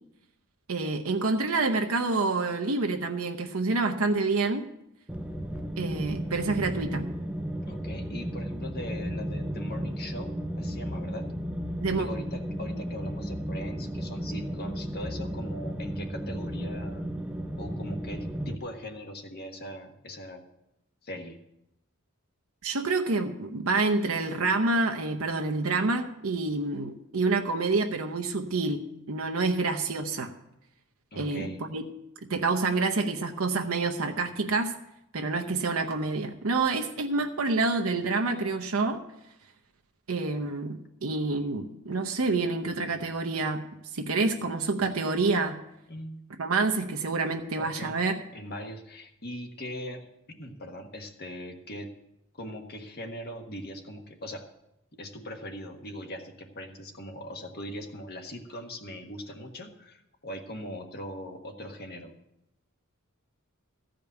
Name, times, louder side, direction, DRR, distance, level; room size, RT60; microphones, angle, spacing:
voice 1, 0.7-4.7 5.8-7.1 11.8-12.1 22.6-30.3 31.2-31.8 32.3-34.7 35.1-39.0 40.1-43.6 43.9-45.6 46.4-48.1, right 3 dB, 70° right, 4 dB, 0.8 m, -27 dB
sound 1, 5.1-18.6, equal, 5° right, 0.6 m, -34 dB
voice 2, 7.7-11.3 12.0-17.1 17.6-20.4 21.0-21.4 31.1-31.6 45.9-46.2 47.6-48.0 48.3-50.1 50.4-51.9 52.3-54.5 54.9-62.1, equal, 45° left, 4 dB, 1.5 m, -40 dB
15.0 x 5.2 x 8.1 m, 0.84 s
head